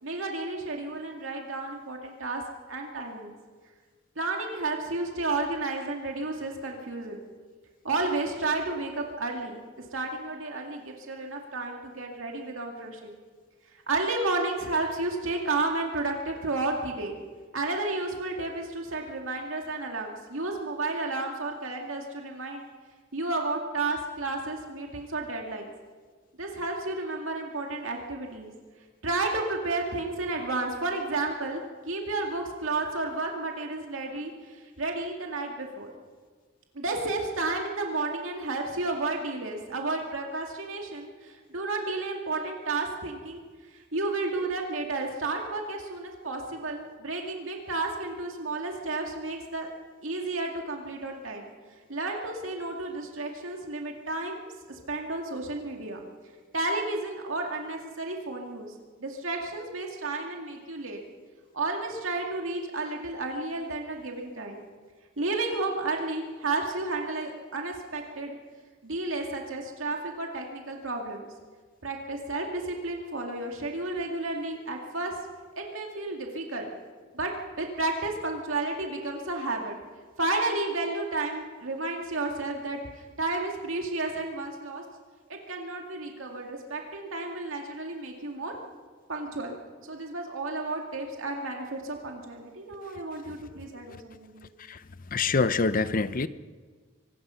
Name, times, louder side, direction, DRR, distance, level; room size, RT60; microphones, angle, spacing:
voice 1, 0.0-2.4 2.7-3.3 4.2-7.2 7.8-13.2 13.7-17.2 17.5-22.7 23.1-25.7 26.4-28.5 29.0-35.9 36.7-43.4 43.7-49.7 50.0-51.5 51.9-56.0 56.5-58.8 59.0-61.0 61.5-64.6 65.2-68.4 68.8-71.3 71.8-75.2 75.6-76.7 77.1-79.8 80.2-84.8 85.3-88.6 89.1-89.6 89.8-94.5, right 2 dB, 80° right, 1 dB, 2.3 m, -32 dB
voice 2, 95.1-96.3, left 4 dB, 45° left, 14 dB, 0.7 m, -25 dB
24.5 x 19.0 x 5.7 m, 1.5 s
head